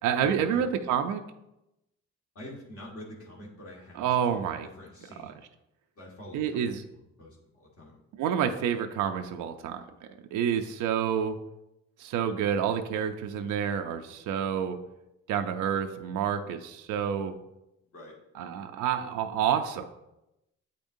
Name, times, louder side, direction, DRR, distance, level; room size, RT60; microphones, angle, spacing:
voice 1, 0.0-1.2 4.0-4.7 5.2-5.3 6.3-6.8 8.2-9.8 10.3-11.4 12.0-14.8 15.3-17.3 18.3-19.9, right 8 dB, 85° right, 6 dB, 0.5 m, -28 dB
voice 2, 2.3-5.4 6.0-6.6 6.9-8.0 17.9-18.2, left 1 dB, 50° left, -3 dB, 1.5 m, -46 dB
8.3 x 5.2 x 2.6 m, 0.90 s
cardioid pair, 90°, 30 cm